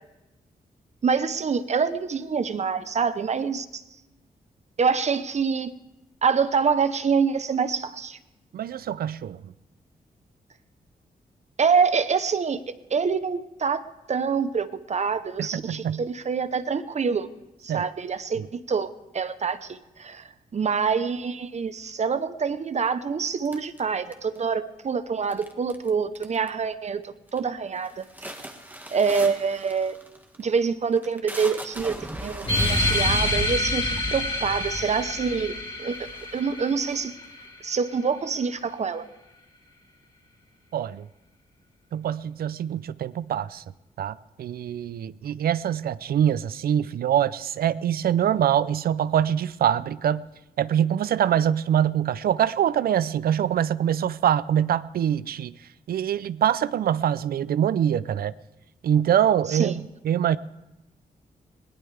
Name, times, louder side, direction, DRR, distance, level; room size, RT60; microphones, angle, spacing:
voice 1, 1.0-3.8 4.8-5.7 6.2-8.2 11.6-12.6 12.9-13.8 14.1-17.3 17.6-18.9 19.1-20.2 20.5-28.3 28.9-30.0 30.4-31.9 32.2-35.5 35.8-36.0 36.3-37.1 37.6-39.0 59.5-59.7, right 5 dB, 45° right, 0.8 m, -26 dB
voice 2, 8.5-9.5 15.4-16.0 17.7-17.9 18.4-18.5 40.7-41.1 41.9-43.6 44.0-50.3 50.6-55.6 55.9-58.3 58.8-60.4, right 10 dB, 80° right, 0.5 m, -24 dB
sound 1, 23.4-24.5 25.3-25.9 26.1-26.7 27.0-27.4 27.8-34.8 35.5-35.6 35.9-37.5, right 1 dB, 10° right, 1.8 m, -41 dB
sound 2, 32.5-37.5, left 1 dB, 35° left, 3.0 m, -27 dB
21.5 x 17.5 x 3.4 m
cardioid pair, 95°, 16 cm